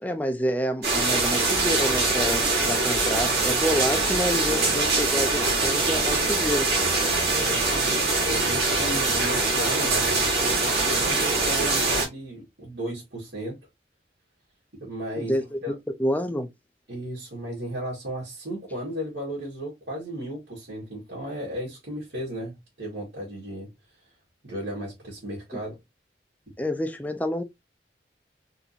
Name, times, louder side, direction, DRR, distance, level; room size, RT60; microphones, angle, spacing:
voice 1, 0.0-6.7 15.2-15.7 16.0-16.5 25.5-25.6 26.6-27.4, equal, 10° left, 0.6 m, -28 dB
sound 1, 0.8-12.1, right 3 dB, 65° right, 2.1 m, -23 dB
voice 2, 7.3-13.6 14.8-15.7 16.9-23.7 24.4-25.8, equal, 85° right, 2.3 m, -35 dB
4.1 x 3.5 x 2.8 m
head